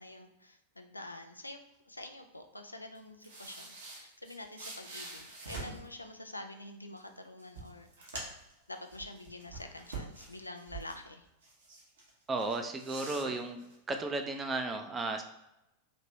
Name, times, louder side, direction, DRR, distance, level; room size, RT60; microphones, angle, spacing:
voice 1, 0.0-1.6 1.9-7.9 8.7-11.3, left 2 dB, 85° left, 6 dB, 0.3 m, -47 dB
sound 1, 3.0-5.9 7.0-7.1 7.4-8.5 8.9-11.0 11.4-12.1 12.4-14.0, right 3 dB, 65° right, 1.0 m, -45 dB
voice 2, 12.3-15.2, right 3 dB, 20° right, 5 dB, 0.4 m, -34 dB
3.1 x 2.9 x 2.7 m, 0.89 s
figure-of-eight pair, 90°, 0 cm